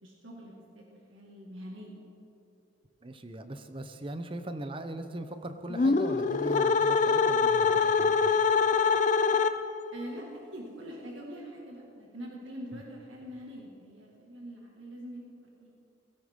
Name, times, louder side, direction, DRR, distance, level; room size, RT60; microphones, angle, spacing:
voice 1, 0.0-2.0 9.9-15.2 15.6-15.7, equal, 80° right, -2 dB, 2.0 m, -44 dB
voice 2, 3.0-8.3 12.7-12.8, right 1 dB, 25° right, 8 dB, 0.7 m, -40 dB
sound 1, 5.7-9.9, left 5 dB, 40° left, 0.4 m, -24 dB
17.0 x 16.5 x 3.7 m, 2.9 s
head